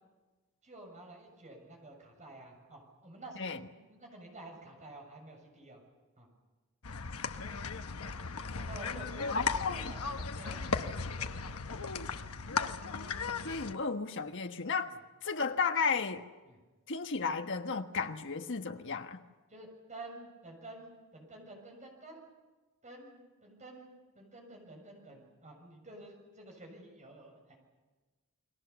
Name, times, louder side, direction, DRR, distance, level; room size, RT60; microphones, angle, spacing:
voice 1, 0.6-5.8 6.2-6.3 8.6-12.0 14.9-15.0 16.5-16.6 19.5-22.3 22.8-27.6, right 2 dB, 35° right, 6.9 m, -50 dB
sound 1, 6.8-13.8, left 5 dB, 80° left, 1.1 m, -36 dB
voice 2, 9.3-9.9 13.4-14.9 15.2-16.2 16.9-19.2, left 5 dB, 60° left, 1.3 m, -33 dB
29.0 x 22.0 x 7.0 m
head